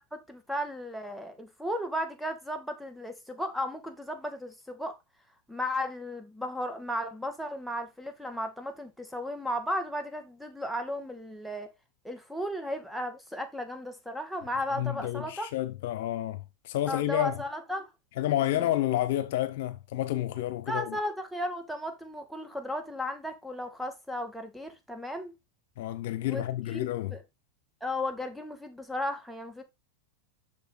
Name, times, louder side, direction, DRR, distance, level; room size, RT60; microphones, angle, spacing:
voice 1, 0.1-5.0 5.5-11.7 12.0-15.5 16.9-17.9 18.4-18.6 20.7-25.3 26.2-27.2 27.8-29.6, left 1 dB, ahead, 2.2 m, -35 dB
voice 2, 14.7-17.4 18.2-21.0 25.8-27.2, left 13 dB, 65° left, 1.0 m, -30 dB
6.9 x 6.6 x 4.0 m
hypercardioid pair, 105°, 0 cm